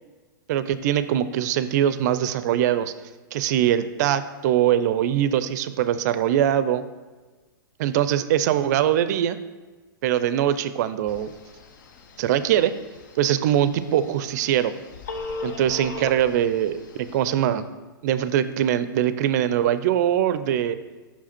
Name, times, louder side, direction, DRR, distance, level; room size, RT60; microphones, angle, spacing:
voice 1, 0.5-2.9 3.3-6.8 7.8-9.4 10.0-11.3 12.2-12.7 13.2-14.7 15.4-17.6 18.0-20.8, right 11 dB, 50° right, 14 dB, 0.4 m, -22 dB
Telephone, 11.1-17.5, left 3 dB, 60° left, 0.7 m, -39 dB
5.6 x 4.8 x 4.3 m, 1.3 s
hypercardioid pair, 120°, 12 cm